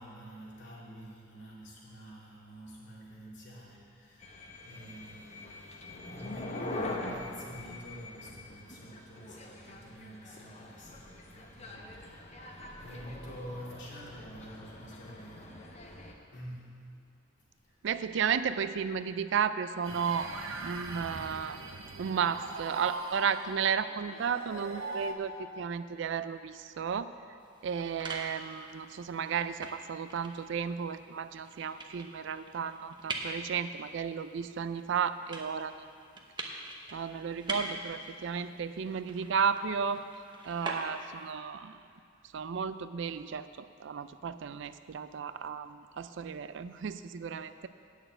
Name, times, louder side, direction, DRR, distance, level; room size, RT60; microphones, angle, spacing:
voice 1, 0.0-16.0 16.3-16.9 17.4-17.8, equal, 60° left, -5 dB, 2.4 m, -48 dB
sound 1, 4.2-16.1, left 2 dB, 35° left, 0.9 m, -43 dB
voice 2, 17.8-20.3 20.6-21.6 22.0-27.1 27.6-35.7 36.9-40.0 40.4-41.8 42.3-47.7, right 7 dB, 65° right, 12 dB, 0.4 m, -33 dB
sound 2, 19.8-25.1, right 2 dB, 85° right, 0.9 m, -41 dB
sound 3, 27.4-41.3, right 2 dB, 25° right, 0.8 m, -44 dB
9.0 x 6.4 x 7.9 m, 2.3 s
head